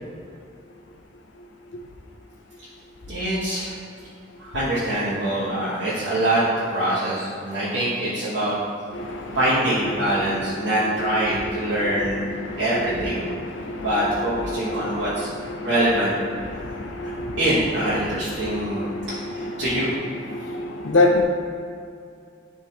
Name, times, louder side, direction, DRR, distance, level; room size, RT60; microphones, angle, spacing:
voice 1, 3.1-3.7 4.4-8.5 9.3-12.3 12.6-13.3 13.8-15.3 15.6-16.1 16.5-16.7 17.0-19.9, right 1 dB, 75° right, -11 dB, 1.3 m, -24 dB
voice 2, 8.9-9.4 10.0-10.2 10.6-10.7 11.4-12.0 12.4-13.9 14.5-15.7 16.4-17.4 18.3-19.7 20.3-21.2, left 2 dB, 75° left, 2 dB, 0.6 m, -27 dB
10.5 x 3.6 x 2.9 m, 2.3 s
head